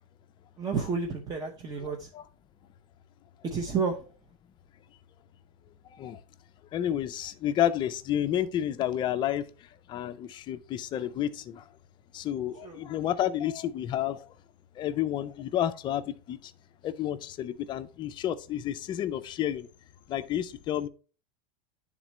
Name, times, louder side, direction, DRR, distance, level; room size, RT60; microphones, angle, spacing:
voice 1, 0.6-2.1 3.4-4.0 12.6-12.8, right 5 dB, 20° right, 0.6 m, -30 dB
voice 2, 1.8-2.2 5.9-6.2 6.7-9.5 9.9-11.6 12.1-14.3 14.8-16.5 16.8-19.7 20.1-20.9, left 11 dB, 25° left, 0.4 m, -30 dB
9.9 x 3.6 x 3.1 m
supercardioid pair, 150°, 18 cm